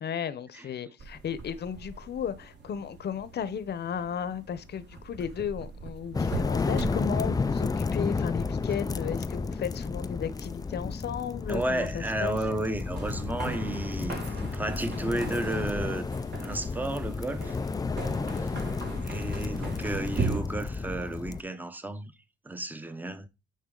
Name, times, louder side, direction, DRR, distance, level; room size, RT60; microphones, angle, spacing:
voice 1, 0.0-12.4, left 8 dB, 55° left, 0.9 m, -34 dB
sound 1, 1.0-20.4, right 3 dB, 65° right, 4.4 m, -40 dB
sound 2, 6.1-21.4, left 4 dB, 20° left, 0.4 m, -32 dB
voice 2, 11.5-16.0 16.4-17.6 18.4-18.5 19.0-22.1 22.4-23.3, right 1 dB, 10° right, 0.9 m, -32 dB
9.4 x 4.0 x 3.9 m
cardioid pair, 90°, 20 cm